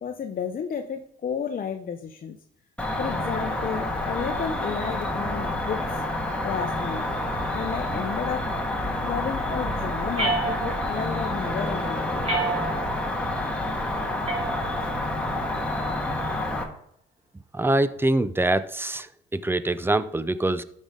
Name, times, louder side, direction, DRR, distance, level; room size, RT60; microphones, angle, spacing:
voice 1, 0.0-2.4 3.0-6.0 6.4-7.1 7.5-8.5 9.0-12.2, left 7 dB, 45° left, 5 dB, 0.7 m, -32 dB
Cricket, 2.8-16.6, left 1 dB, 5° left, 1.7 m, -28 dB
sound 1, 10.2-11.1 12.2-13.1 14.3-15.1, right 3 dB, 30° right, 2.5 m, -29 dB
voice 2, 17.5-19.1 19.4-20.6, right 2 dB, 10° right, 14 dB, 0.5 m, -24 dB
12.5 x 5.4 x 3.7 m, 0.69 s
cardioid pair, 90°, 20 cm